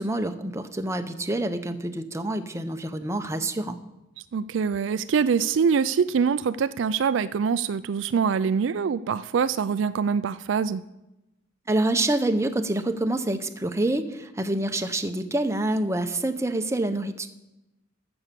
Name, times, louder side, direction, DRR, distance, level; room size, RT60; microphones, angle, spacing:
voice 1, 0.0-3.8 11.7-17.3, right 1 dB, 15° right, 8 dB, 0.7 m, -27 dB
voice 2, 4.3-10.8, right 6 dB, 70° right, 15 dB, 0.4 m, -24 dB
14.5 x 7.1 x 6.8 m, 0.96 s
head